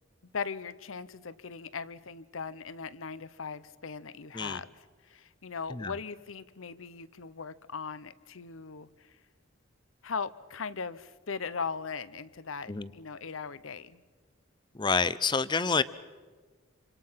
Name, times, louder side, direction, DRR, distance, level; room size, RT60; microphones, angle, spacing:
voice 1, 0.3-9.2 10.0-14.0, left 5 dB, 80° left, 16 dB, 0.8 m, -39 dB
voice 2, 14.7-15.8, left 4 dB, 20° left, 16 dB, 0.6 m, -28 dB
27.0 x 26.0 x 5.8 m, 1.5 s
head